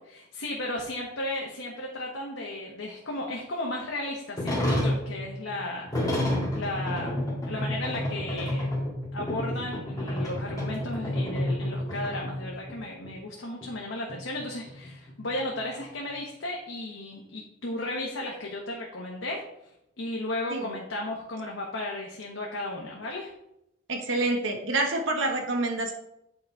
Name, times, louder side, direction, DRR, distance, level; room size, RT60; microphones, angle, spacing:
voice 1, 0.1-7.2 7.5-8.7 9.1-23.3, left 1 dB, 85° left, -1 dB, 1.1 m, -35 dB
sound 1, 4.4-12.8 13.0-13.1 13.6-13.7 14.1-15.7, left 1 dB, 20° left, 1.9 m, -30 dB
voice 2, 23.9-25.9, right 2 dB, 75° right, 2 dB, 1.2 m, -27 dB
8.5 x 3.9 x 4.5 m, 0.83 s
head